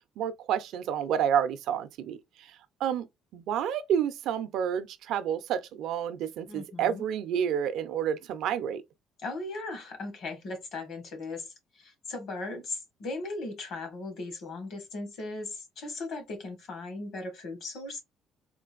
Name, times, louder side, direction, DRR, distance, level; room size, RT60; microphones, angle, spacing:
voice 1, 0.2-2.5 2.8-3.1 3.3-8.8, right 9 dB, 75° right, 0.5 m, -29 dB
voice 2, 6.5-7.0 9.2-18.0, left 2 dB, 65° left, 1.4 m, -38 dB
3.8 x 2.5 x 2.4 m
cardioid pair, 120°, 0 cm